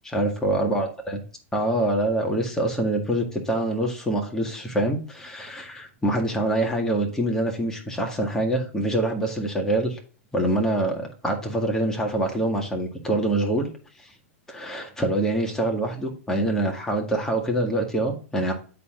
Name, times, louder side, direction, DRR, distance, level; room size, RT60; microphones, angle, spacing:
voice 1, 0.0-1.2 1.5-10.0 10.3-13.7 14.5-18.5, right 1 dB, 5° left, 1 dB, 1.8 m, -25 dB
9.7 x 4.2 x 3.9 m, 0.39 s
hypercardioid pair, 130°, 8 cm